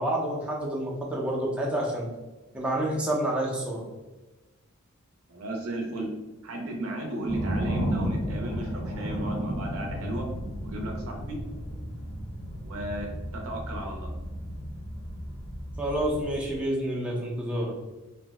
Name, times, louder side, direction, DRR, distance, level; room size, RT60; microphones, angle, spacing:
voice 1, 0.0-2.1 2.5-3.8 15.8-17.7, right 1 dB, 5° right, -3 dB, 0.5 m, -28 dB
voice 2, 5.3-6.1 6.4-10.2 10.6-11.4 12.6-14.1, right 1 dB, 70° right, 1 dB, 0.5 m, -35 dB
sound 1, 7.3-16.6, equal, 80° left, 1.3 m, -33 dB
2.6 x 2.1 x 3.3 m, 1.1 s
head